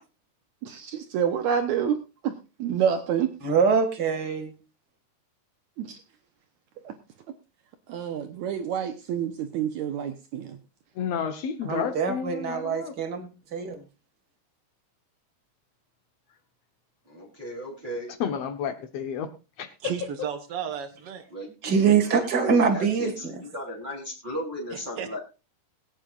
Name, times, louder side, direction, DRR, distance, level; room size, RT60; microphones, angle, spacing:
voice 1, 0.6-2.0 2.2-3.3 5.8-6.0 6.8-6.9 7.9-10.6, right 8 dB, 85° right, 1.6 m, -28 dB
voice 2, 3.4-4.5 11.6-13.8 21.6-23.4, right 6 dB, 35° right, 1.8 m, -24 dB
voice 3, 10.9-12.9 18.2-19.3 19.6-19.9, left 7 dB, 70° left, 1.6 m, -31 dB
voice 4, 17.1-18.1 21.3-25.2, equal, 15° right, 2.9 m, -36 dB
voice 5, 19.8-21.2 24.7-25.2, right 8 dB, 55° right, 1.6 m, -34 dB
21.5 x 9.0 x 2.4 m
omnidirectional pair, 4.5 m